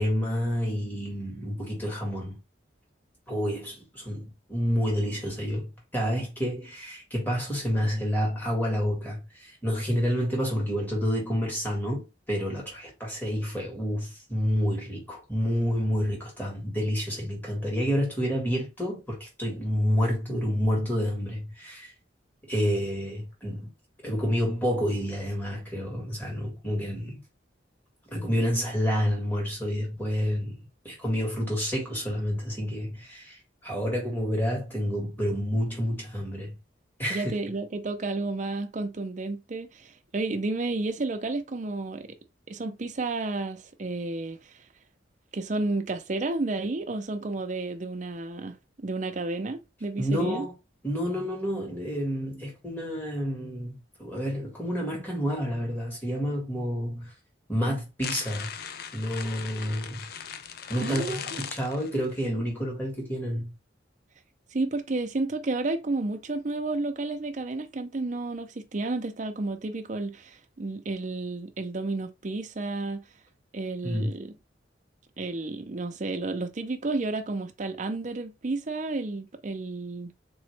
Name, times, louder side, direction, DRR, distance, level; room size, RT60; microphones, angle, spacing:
voice 1, 0.0-2.4 3.3-21.9 22.5-23.7 24.0-27.2 28.1-36.6 37.0-37.3 50.0-50.5 50.8-57.1 57.5-58.5 58.9-60.0 60.7-63.5 73.8-74.1, equal, 10° left, 1.7 m, -29 dB
voice 2, 37.1-42.1 42.5-44.4 45.3-50.5 60.8-61.2 64.5-73.0 73.5-74.3 75.2-80.2, right 2 dB, 40° right, 0.5 m, -31 dB
sound 1, 58.0-62.2, left 7 dB, 55° left, 0.4 m, -39 dB
3.8 x 3.0 x 3.2 m
head